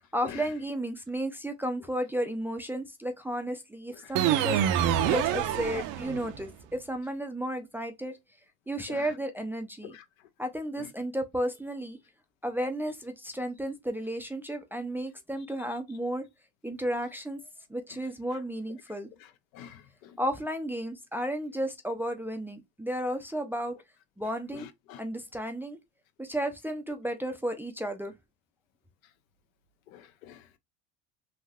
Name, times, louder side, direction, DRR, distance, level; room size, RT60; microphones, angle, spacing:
voice 1, 0.1-8.2 8.7-10.0 10.4-12.0 12.4-16.2 16.6-17.4 17.7-19.1 20.2-23.8 24.2-24.7 25.0-25.8 26.2-28.1, right 1 dB, 5° right, 0.3 m, -33 dB
sound 1, 4.1-6.5, right 11 dB, 50° right, 0.5 m, -26 dB
voice 2, 29.9-30.6, left 10 dB, 85° left, 0.7 m, -47 dB
3.4 x 2.6 x 2.3 m
supercardioid pair, 110°, 40 cm